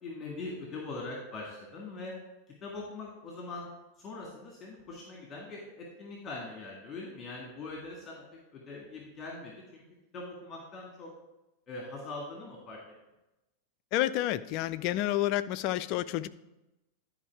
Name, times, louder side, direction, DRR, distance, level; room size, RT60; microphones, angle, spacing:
voice 1, 0.0-2.1 2.6-3.7 4.0-8.2 8.5-9.8 10.1-11.1 11.7-12.8, left 3 dB, 25° left, -2 dB, 1.9 m, -42 dB
voice 2, 13.9-16.3, left 14 dB, 45° left, 15 dB, 0.4 m, -29 dB
11.0 x 4.6 x 4.6 m, 0.98 s
figure-of-eight pair, 90°, 0 cm